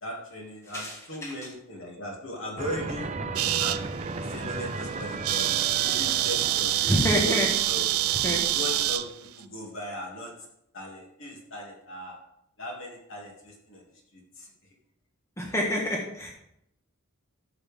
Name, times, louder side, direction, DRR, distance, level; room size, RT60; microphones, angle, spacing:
voice 1, 0.0-3.1 3.6-3.9 4.2-5.5 5.8-6.9 7.2-7.4 7.7-7.9 8.4-10.5 10.7-12.2 12.6-13.8 14.1-14.5, left 1 dB, 60° left, -2 dB, 2.8 m, -38 dB
voice 2, 0.7-1.3 6.9-7.5 8.2-8.4 15.4-16.3, equal, 15° left, -1 dB, 1.6 m, -27 dB
sound 1, 2.6-8.9, right 3 dB, 30° right, 0.7 m, -36 dB
sound 2, 3.4-3.8 4.3-4.6 4.8-4.9 5.1-9.1, right 14 dB, 85° right, 0.5 m, -26 dB
13.5 x 6.8 x 3.7 m, 0.79 s
head